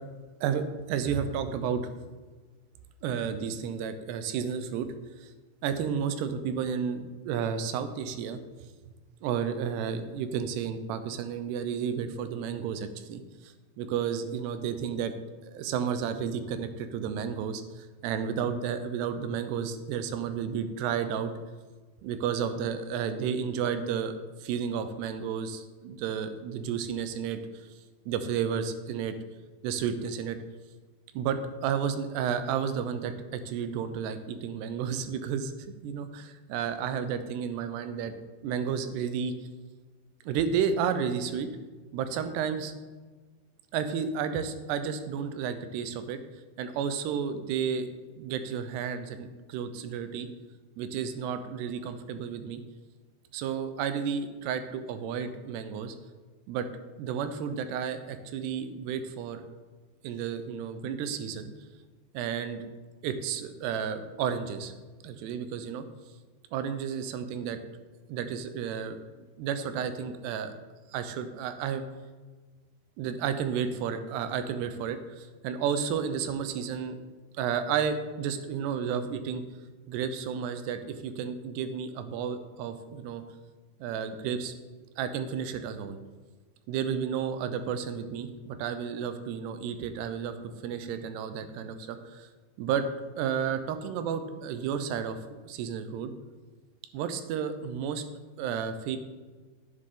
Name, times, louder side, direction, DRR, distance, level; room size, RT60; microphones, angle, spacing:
voice 1, 0.4-1.9 3.0-4.9 5.2-5.3 5.6-8.7 9.2-15.1 15.4-21.3 22.0-27.7 28.1-29.1 29.6-30.4 31.1-38.1 38.4-39.3 40.3-41.5 41.9-42.7 43.7-46.2 46.6-47.9 48.2-50.3 50.8-52.6 53.3-56.0 56.5-56.7 57.0-59.5 60.0-61.5 62.1-62.7 63.0-64.7 65.0-65.8 66.5-67.6 68.1-69.0 69.4-70.5 70.9-71.8 73.0-77.0 77.4-79.4 79.9-83.2 83.8-84.6 85.0-86.0 86.7-90.3 90.6-92.3 92.6-92.9 93.2-96.1 96.9-98.0 98.4-99.0, right 7 dB, 90° right, 10 dB, 2.9 m, -32 dB
10.0 x 10.0 x 3.8 m, 1.3 s
omnidirectional pair, 4.7 m